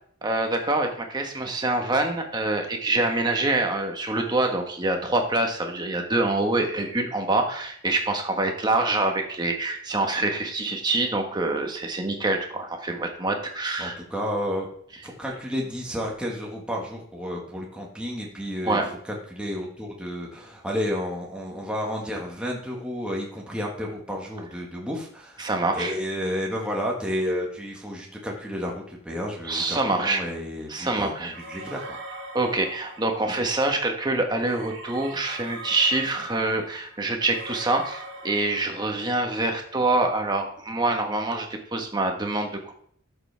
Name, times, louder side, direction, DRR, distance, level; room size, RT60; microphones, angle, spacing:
voice 1, 0.2-13.9 18.6-18.9 25.4-25.9 29.5-30.2 30.7-31.3 32.3-42.7, right 2 dB, 20° right, 3 dB, 1.4 m, -25 dB
voice 2, 13.8-14.7 15.0-31.8 33.3-33.4, equal, 5° right, -2 dB, 1.6 m, -31 dB
sound 1, 31.3-33.5 34.4-39.3, right 2 dB, 75° right, 2.5 m, -42 dB
12.5 x 6.9 x 3.4 m, 0.62 s
head